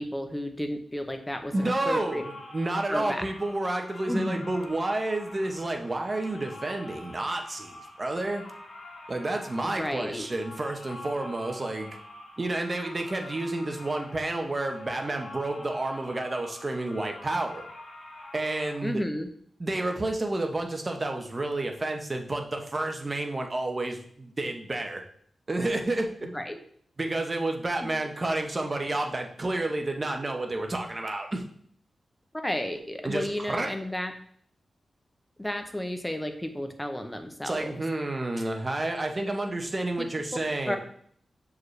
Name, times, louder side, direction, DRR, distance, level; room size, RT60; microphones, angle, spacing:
voice 1, 0.0-2.2 2.9-3.2 4.1-4.4 9.6-10.3 18.8-19.3 26.3-26.6 27.8-27.9 32.3-34.1 35.4-37.8 40.0-40.1 40.7-40.8, left 1 dB, 10° left, 6 dB, 0.7 m, -32 dB
sound 1, 1.4-18.8, left 2 dB, 65° left, 1.4 m, -46 dB
voice 2, 1.5-8.4 9.1-12.0 12.4-17.6 18.3-19.0 19.6-25.0 25.5-26.3 27.0-31.4 33.0-33.7 37.4-40.8, right 2 dB, 25° right, 3 dB, 0.8 m, -30 dB
6.3 x 4.9 x 3.2 m, 0.62 s
wide cardioid pair, 130°, 0 cm